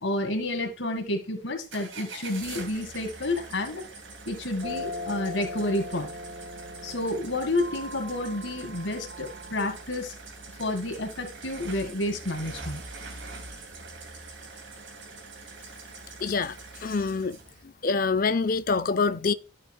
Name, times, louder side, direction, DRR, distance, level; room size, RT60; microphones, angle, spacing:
voice 1, 0.0-3.8 4.3-6.1 6.8-10.2 10.6-12.8, left 1 dB, 75° left, 2.0 m, -30 dB
sound 1, 1.7-17.6, right 3 dB, 75° right, 2.6 m, -43 dB
sound 2, 4.6-9.8, left 1 dB, 55° right, 3.2 m, -39 dB
voice 2, 16.2-16.5 16.8-17.4 17.8-19.3, left 4 dB, 45° left, 0.5 m, -25 dB
11.0 x 6.5 x 2.3 m
head